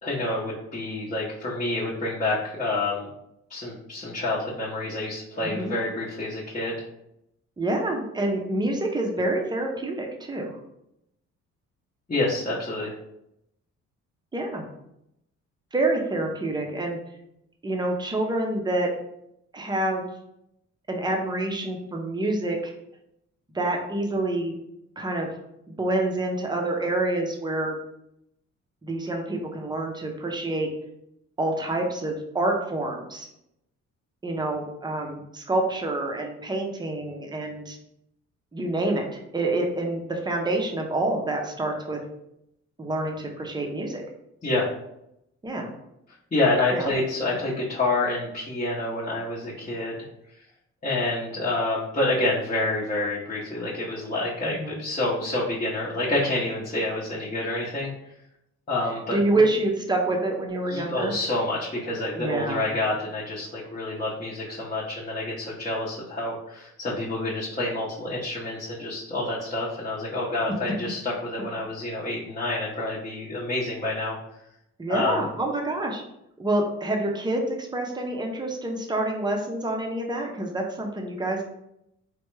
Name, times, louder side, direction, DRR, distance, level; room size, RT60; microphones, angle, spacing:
voice 1, 0.0-3.1 3.5-6.8 12.1-12.9 44.4-44.7 46.3-50.0 50.8-57.9 58.7-59.2 60.7-74.2 74.9-75.3, left 2 dB, 25° left, -7 dB, 0.8 m, -28 dB
voice 2, 7.6-10.6 14.3-14.6 15.7-17.0 17.6-18.9 19.5-20.1 20.9-22.7 23.5-24.6 25.0-25.3 25.7-27.8 28.8-30.7 31.4-33.3 34.2-37.8 38.5-42.0 42.8-44.0 45.4-45.7 46.7-46.9 54.4-54.8 59.1-61.1 62.1-62.7 74.8-76.0 76.4-81.4, right 2 dB, 15° right, 1 dB, 0.6 m, -27 dB
3.3 x 2.2 x 3.1 m, 0.80 s
cardioid pair, 90°, 30 cm